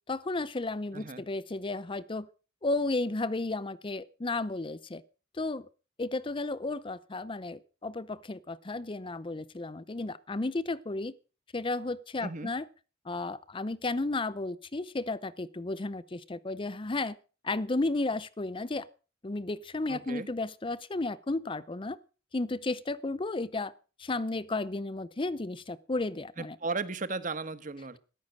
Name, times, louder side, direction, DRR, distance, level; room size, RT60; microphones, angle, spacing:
voice 1, 0.1-2.3 2.6-5.0 5.3-5.7 6.0-11.1 11.5-12.6 13.0-17.2 17.4-18.9 19.2-22.0 22.3-23.7 24.0-26.6, left 2 dB, 25° left, 0.6 m, -33 dB
voice 2, 0.9-1.2 12.2-12.5 19.9-20.3 26.4-28.0, right 3 dB, 45° right, 1.2 m, -35 dB
14.0 x 10.5 x 6.4 m
head